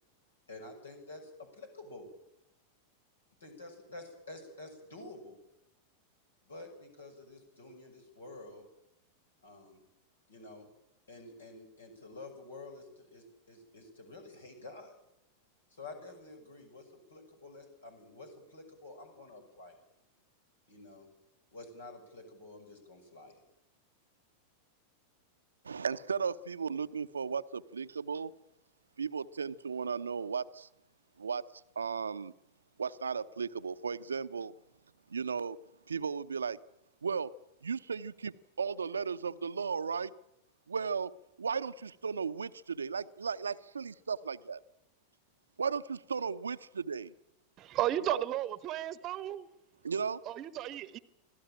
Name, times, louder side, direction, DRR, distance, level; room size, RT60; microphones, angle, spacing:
voice 1, 0.5-2.1 3.4-5.4 6.4-8.6 9.4-9.8 10.3-10.7 11.1-15.0 15.7-19.8 20.7-21.1 21.5-23.4, left 2 dB, 70° left, 6.4 m, -49 dB
voice 2, 25.6-28.3 29.0-30.7 31.2-32.3 32.8-34.5 35.1-35.6 35.9-36.6 37.0-37.3 37.6-40.1 40.7-41.1 41.4-44.6 45.6-47.1 48.1-48.2 49.8-50.2, right 5 dB, 75° right, 0.8 m, -35 dB
voice 3, 47.6-49.5 50.2-51.0, right 13 dB, 35° right, 1.1 m, -34 dB
25.5 x 16.0 x 8.9 m
figure-of-eight pair, 90°, 0 cm